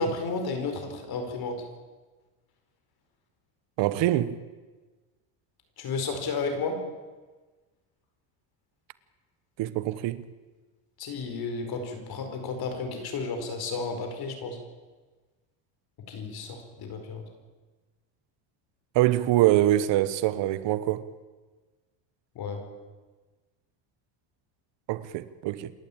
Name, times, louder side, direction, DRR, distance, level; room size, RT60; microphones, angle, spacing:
voice 1, 0.0-1.6 5.8-6.8 11.0-14.6 16.1-17.2 22.3-22.6, left 4 dB, 50° left, 4.9 m, -32 dB
voice 2, 3.8-4.4 9.6-10.2 18.9-21.0 24.9-25.7, right 14 dB, 60° right, 1.2 m, -24 dB
27.5 x 12.0 x 8.8 m
cardioid pair, 130°, 49 cm